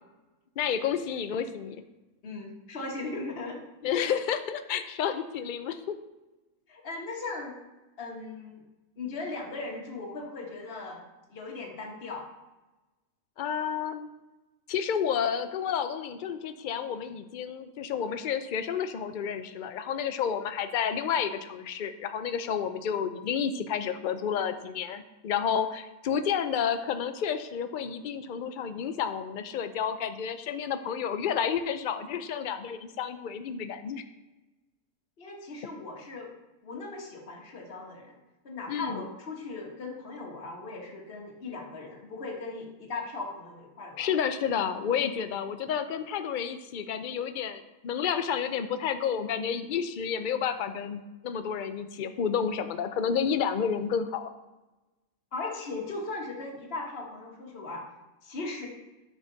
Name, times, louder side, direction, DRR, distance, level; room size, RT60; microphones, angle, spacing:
voice 1, 0.6-1.8 3.8-6.0 13.4-14.1 14.7-34.0 38.7-39.1 44.0-54.3, left 7 dB, 70° left, 9 dB, 0.4 m, -30 dB
voice 2, 2.2-3.6 6.7-7.6 8.0-8.6 9.0-11.0 11.3-12.2 35.2-36.3 36.6-38.2 38.4-44.1 45.0-45.1 55.3-57.8 58.2-58.7, left 3 dB, 45° left, -1 dB, 1.6 m, -38 dB
9.7 x 6.5 x 4.0 m, 1.1 s
omnidirectional pair, 1.5 m